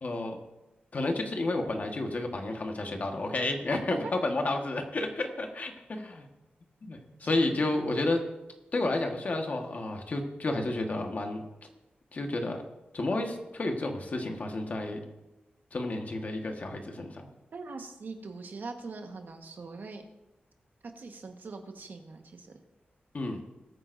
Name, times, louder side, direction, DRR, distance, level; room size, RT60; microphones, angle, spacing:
voice 1, 0.0-0.4 0.9-6.3 6.8-8.2 8.7-11.4 12.1-12.6 12.9-15.0 15.7-17.3 23.1-23.4, left 2 dB, 45° left, 3 dB, 1.5 m, -31 dB
voice 2, 3.7-4.1 7.2-7.3 17.5-20.0 20.9-22.5, right 3 dB, 65° right, 4 dB, 1.3 m, -42 dB
21.0 x 9.1 x 2.6 m, 1.0 s
wide cardioid pair, 140°, 4 cm